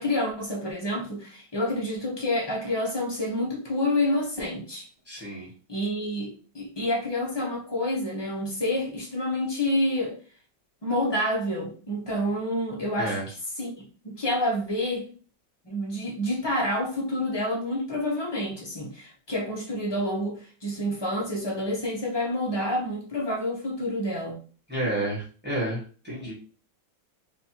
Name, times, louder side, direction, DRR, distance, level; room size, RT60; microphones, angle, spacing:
voice 1, 0.0-4.9 5.7-10.2 10.8-13.7 14.0-15.1 15.6-24.4, left 1 dB, 40° left, -3 dB, 0.3 m, -28 dB
voice 2, 5.1-5.5 13.0-13.3 24.7-26.3, right 1 dB, 5° right, -6 dB, 1.1 m, -30 dB
4.1 x 2.6 x 2.9 m, 0.38 s
omnidirectional pair, 2.1 m